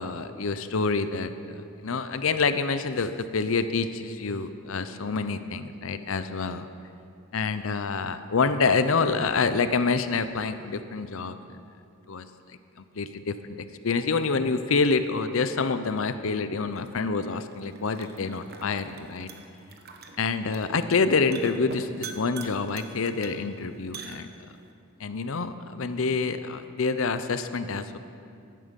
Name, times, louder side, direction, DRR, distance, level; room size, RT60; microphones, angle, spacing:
voice 1, 0.0-1.3 1.8-6.7 7.3-11.6 12.1-19.3 20.2-24.3 25.0-28.0, left 4 dB, 70° left, 11 dB, 0.6 m, -27 dB
sound 1, 16.7-24.7, right 4 dB, 45° right, 1.1 m, -45 dB
15.5 x 11.0 x 5.3 m, 2.4 s
head